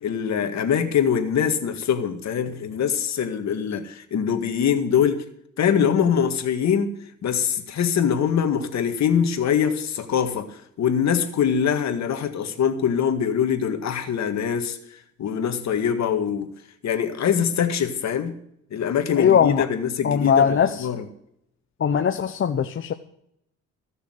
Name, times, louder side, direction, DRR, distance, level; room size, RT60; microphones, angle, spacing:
voice 1, 0.0-5.2 5.6-6.9 7.2-14.8 15.2-16.5 16.8-18.3 18.7-21.1, left 8 dB, 60° left, 1.9 m, -23 dB
voice 2, 19.2-19.6 20.0-20.9 21.8-22.9, left 7 dB, 45° left, 0.8 m, -20 dB
15.0 x 6.7 x 7.8 m
cardioid pair, 90°, 30 cm